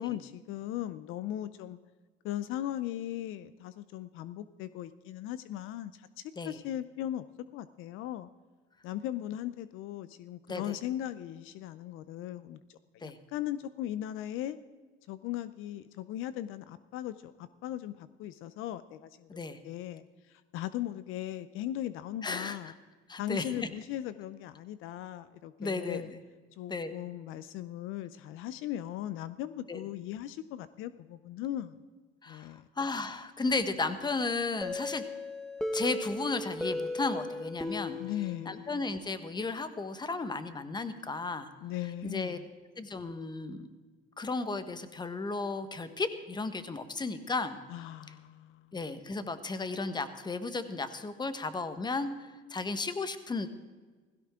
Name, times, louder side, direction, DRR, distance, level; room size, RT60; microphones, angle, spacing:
voice 1, 0.0-1.8 2.2-7.2 7.5-8.3 8.8-14.6 15.1-22.7 23.2-26.1 26.5-31.8 32.3-32.7 38.0-38.6 41.6-42.5 47.7-48.8, left 12 dB, 70° left, 14 dB, 0.7 m, -38 dB
voice 2, 22.2-22.7 23.1-23.7 25.6-26.2 26.7-26.9 29.7-29.8 32.2-35.0 35.7-38.0 38.5-41.5 42.0-42.4 42.8-43.7 44.2-47.6 48.7-52.1 52.5-53.5, left 3 dB, 20° left, 11 dB, 1.3 m, -34 dB
sound 1, 34.6-39.3, left 2 dB, 5° left, 1.3 m, -37 dB
16.5 x 16.0 x 3.8 m, 1.4 s
supercardioid pair, 95°, 21 cm